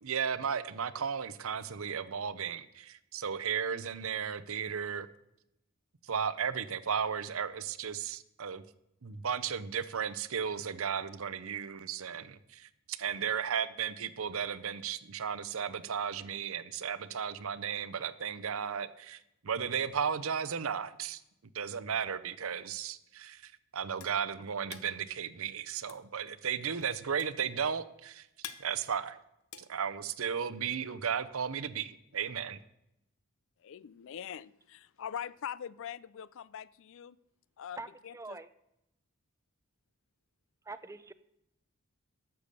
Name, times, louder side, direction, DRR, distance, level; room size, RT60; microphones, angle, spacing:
voice 1, 0.0-5.1 6.0-8.6 9.0-21.2 21.5-28.3 28.6-29.2 29.6-32.6, right 7 dB, 65° right, 15 dB, 0.7 m, -35 dB
sound 1, 23.4-30.5, left 9 dB, 80° left, 0.8 m, -50 dB
voice 2, 33.6-37.2 37.6-37.8 38.0-38.4, left 9 dB, 60° left, 20 dB, 0.4 m, -42 dB
voice 3, 38.1-38.5 40.7-41.1, right 3 dB, 15° right, 13 dB, 0.4 m, -43 dB
11.5 x 6.9 x 6.8 m, 0.84 s
head